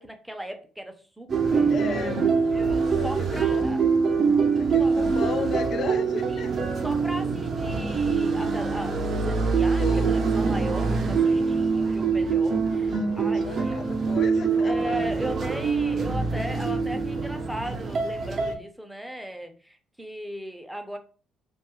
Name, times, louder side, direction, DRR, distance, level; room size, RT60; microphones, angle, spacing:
voice 1, 0.0-1.7 2.5-3.8 4.8-5.1 6.3-6.5 6.8-13.9 14.6-21.0, equal, 5° right, 6 dB, 0.5 m, -37 dB
sound 1, 1.3-18.6, right 5 dB, 50° right, 0.5 m, -24 dB
voice 2, 1.7-2.4 2.9-3.7 4.6-6.5 9.8-10.4 12.6-15.3, left 6 dB, 55° left, 9 dB, 0.4 m, -36 dB
2.6 x 2.2 x 3.0 m, 0.37 s
cardioid pair, 95°, 0 cm